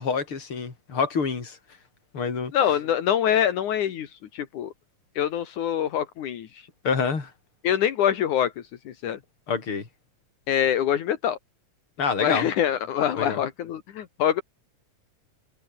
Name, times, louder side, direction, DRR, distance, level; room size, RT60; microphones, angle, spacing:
voice 1, 0.0-1.6 2.1-2.5 6.8-7.3 9.5-9.9 12.0-12.5 13.1-13.4, left 5 dB, 40° left, 4.6 m, -27 dB
voice 2, 2.5-4.7 5.2-6.6 7.6-8.5 8.9-9.2 10.5-11.4 12.2-14.4, left 10 dB, 75° left, 3.1 m, -24 dB
omnidirectional pair, 3.5 m